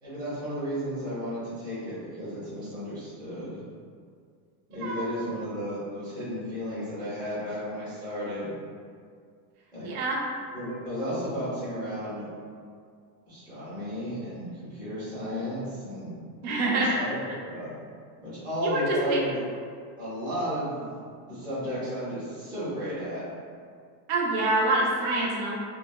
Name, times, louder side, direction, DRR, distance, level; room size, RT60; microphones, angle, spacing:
voice 1, 0.0-3.6 4.7-8.5 9.7-9.9 10.5-12.3 13.3-16.1 16.7-17.7 18.2-19.6 20.0-21.0 21.3-23.2, equal, 10° right, -12 dB, 0.6 m, -33 dB
voice 2, 9.8-10.2 16.4-17.0 18.6-19.2 24.1-25.6, right 2 dB, 65° right, -3 dB, 0.7 m, -26 dB
3.2 x 2.0 x 2.2 m, 2.2 s
cardioid pair, 170°, 47 cm